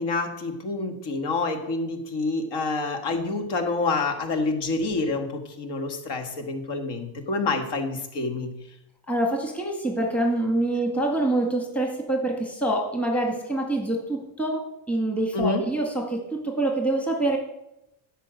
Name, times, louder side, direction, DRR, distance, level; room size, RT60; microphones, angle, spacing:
voice 1, 0.0-8.5 15.3-15.6, left 3 dB, 60° left, 6 dB, 2.0 m, -27 dB
voice 2, 9.1-17.4, right 1 dB, 5° left, 1 dB, 2.0 m, -26 dB
10.5 x 5.6 x 7.7 m, 0.87 s
cardioid pair, 100°, 45 cm